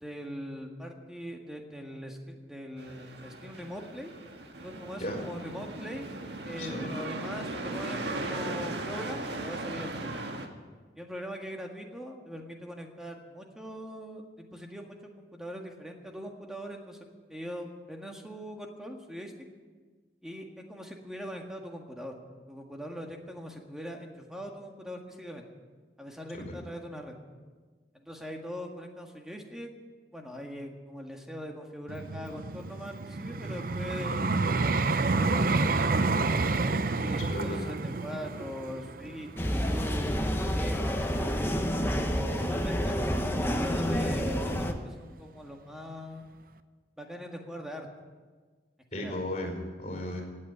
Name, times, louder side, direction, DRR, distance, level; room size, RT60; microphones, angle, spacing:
voice 1, 0.0-4.1 4.6-6.1 6.5-10.2 11.0-19.5 20.2-22.1 22.5-25.4 26.0-27.1 27.9-29.7 30.1-34.2 35.2-35.8 37.0-41.5 42.4-46.2 47.0-47.9 48.9-49.2, equal, 5° right, 2 dB, 1.7 m, -41 dB
sound 1, 2.8-10.5, right 2 dB, 75° right, 1.6 m, -37 dB
voice 2, 6.6-6.9 26.3-26.5 37.3-37.7 48.9-50.2, left 1 dB, 35° left, 2 dB, 5.0 m, -35 dB
Vehicle, 31.9-41.0 41.6-41.8, right 3 dB, 50° right, 0.7 m, -29 dB
sound 2, 39.4-44.7, equal, 15° left, 1.0 m, -29 dB
17.0 x 8.6 x 9.5 m, 1.4 s
head